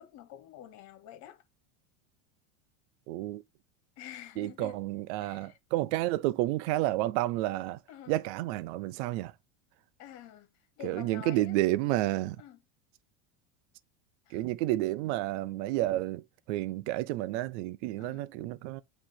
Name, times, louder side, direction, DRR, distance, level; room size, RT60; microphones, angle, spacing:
voice 1, 0.0-1.4 4.0-4.8 5.2-5.6 7.9-8.1 10.0-10.5 10.8-11.6 12.4-12.6 14.3-14.4 18.0-18.3, left 11 dB, 50° left, 2.0 m, -47 dB
voice 2, 3.1-3.4 4.4-7.8 8.1-9.3 10.8-12.4 14.3-18.8, right 16 dB, 65° right, 0.8 m, -30 dB
8.9 x 3.3 x 5.7 m
supercardioid pair, 145°, 36 cm